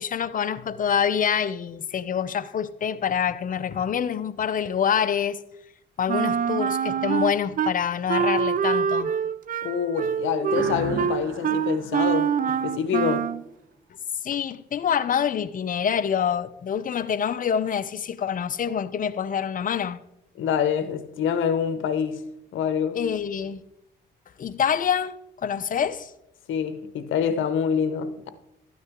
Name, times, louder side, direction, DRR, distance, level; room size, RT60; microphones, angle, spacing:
voice 1, 0.0-5.4 6.0-9.1 14.2-20.0 22.9-23.6 24.4-26.1, left 8 dB, 45° left, 0.6 m, -26 dB
Wind instrument woodwind instrument, 6.1-7.7 8.1-13.4, right 7 dB, 45° right, 0.5 m, -25 dB
voice 2, 9.6-13.3 20.4-22.2 22.5-23.0 26.5-28.3, left 7 dB, 75° left, 1.0 m, -26 dB
sound 1, 10.5-13.2, right 4 dB, 85° right, 1.6 m, -36 dB
12.5 x 9.6 x 3.6 m
cardioid pair, 90°, 20 cm